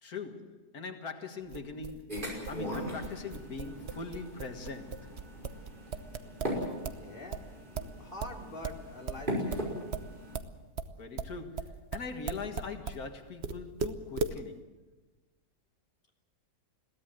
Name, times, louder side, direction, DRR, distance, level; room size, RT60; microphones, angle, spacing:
voice 1, 0.0-5.2 11.0-14.7, left 4 dB, 75° left, 2.3 m, -42 dB
sound 1, 1.5-7.0 7.3-13.0 13.4-14.4, right 5 dB, 50° right, 1.2 m, -37 dB
sound 2, 2.1-10.3, equal, 30° right, 5.6 m, -39 dB
voice 2, 6.6-9.9, left 1 dB, 35° left, 3.4 m, -46 dB
22.0 x 17.0 x 7.7 m
omnidirectional pair, 1.6 m